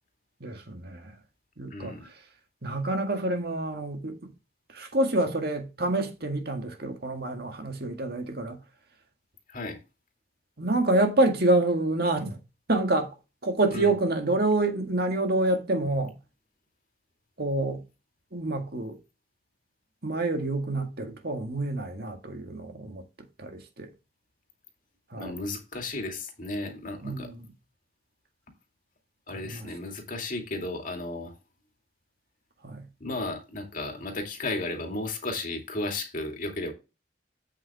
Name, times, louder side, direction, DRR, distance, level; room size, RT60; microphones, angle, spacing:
voice 1, 0.4-1.2 1.6-2.1 2.6-4.3 4.7-8.6 10.6-12.4 12.7-13.1 13.4-16.1 17.4-17.8 18.3-19.0 20.0-23.0 23.4-23.9 25.1-25.3 27.0-27.5 29.3-29.7 32.6-32.9, right 2 dB, 55° right, 1.9 m, -27 dB
voice 2, 1.7-2.1 9.5-9.8 13.7-13.9 25.1-27.3 29.3-31.3 33.0-36.7, left 2 dB, 45° left, 2.4 m, -34 dB
8.5 x 7.3 x 3.6 m
head